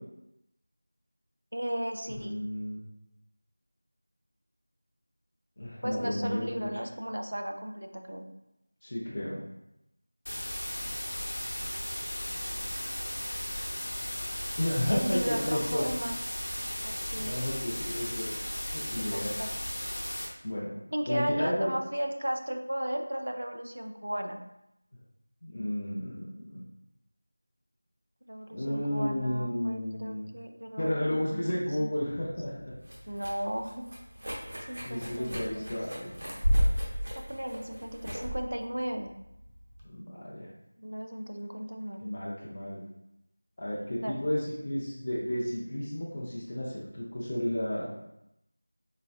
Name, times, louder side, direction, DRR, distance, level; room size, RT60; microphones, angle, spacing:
voice 1, 1.5-2.4 5.8-8.3 14.9-16.2 16.8-17.5 19.1-19.5 20.9-24.4 28.3-31.9 33.1-33.9 34.6-35.8 37.2-39.1 40.8-42.0 44.0-44.2, equal, 85° right, 5 dB, 0.4 m, -35 dB
voice 2, 2.2-2.8 5.6-6.7 8.8-9.4 14.6-15.8 17.2-18.4 18.7-19.3 20.4-20.7 21.1-21.7 25.4-26.6 28.5-30.2 30.8-32.7 34.8-36.1 39.8-40.5 42.0-42.8 43.6-47.9, left 1 dB, 30° left, -7 dB, 0.5 m, -32 dB
sound 1, 10.3-20.3, equal, 55° left, 0.9 m, -36 dB
sound 2, 32.1-39.8, equal, 55° right, 0.8 m, -33 dB
4.0 x 2.3 x 2.3 m, 0.84 s
figure-of-eight pair, 175°, 0 cm